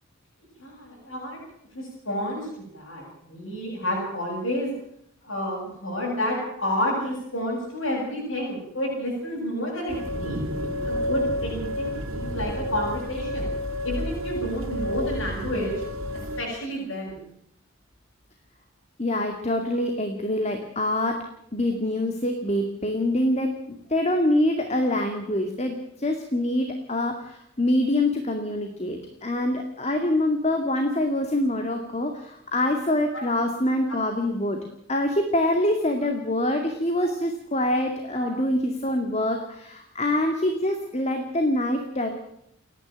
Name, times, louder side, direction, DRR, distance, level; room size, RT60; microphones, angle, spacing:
voice 1, 0.6-1.4 1.7-4.7 5.2-10.4 10.8-13.5 13.8-15.8 16.1-17.2 33.1-33.2 33.9-34.0 38.1-38.3, equal, 70° left, -3 dB, 7.8 m, -30 dB
sound 1, 9.9-16.4, left 1 dB, 80° right, 3.0 m, -30 dB
voice 2, 19.0-21.2 21.5-34.6 34.9-42.1, left 1 dB, 30° left, 5 dB, 2.2 m, -25 dB
29.5 x 11.0 x 9.0 m, 0.73 s
head